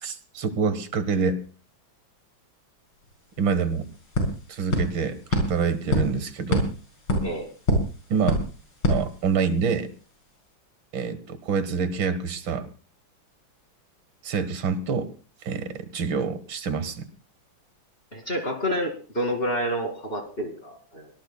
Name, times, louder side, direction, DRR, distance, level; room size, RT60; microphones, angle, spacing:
voice 1, 0.0-1.4 3.4-3.9 4.5-6.7 8.1-8.4 8.9-9.9 10.9-12.7 14.2-15.1 15.4-17.1, right 5 dB, 70° right, 11 dB, 2.1 m, -26 dB
sound 1, 3.0-3.1 3.4-9.8, equal, 85° left, 6.3 m, -28 dB
voice 2, 18.1-21.1, equal, 30° left, 3 dB, 2.4 m, -29 dB
24.0 x 19.0 x 2.2 m, 0.38 s
omnidirectional pair, 2.2 m